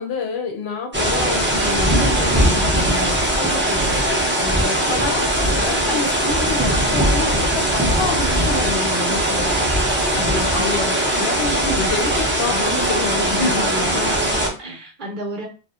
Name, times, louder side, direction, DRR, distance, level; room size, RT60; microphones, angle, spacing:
voice 1, 0.0-4.0 4.4-9.7 10.1-14.1, left 4 dB, 70° left, 2 dB, 0.8 m, -28 dB
sound 1, 0.9-14.5, right 1 dB, 15° right, 0.4 m, -20 dB
voice 2, 10.1-10.8 13.3-15.4, equal, 50° right, -2 dB, 0.8 m, -30 dB
2.8 x 2.0 x 2.4 m, 0.35 s
omnidirectional pair, 1.2 m